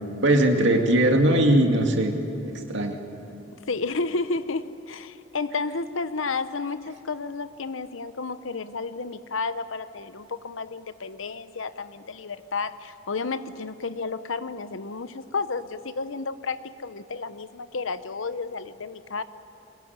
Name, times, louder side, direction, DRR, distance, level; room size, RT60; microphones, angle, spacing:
voice 1, 0.2-2.2 2.7-3.0, right 1 dB, 60° right, 3 dB, 2.5 m, -20 dB
voice 2, 3.7-19.2, left 4 dB, 70° left, 13 dB, 0.9 m, -31 dB
23.5 x 21.0 x 9.6 m, 3.0 s
head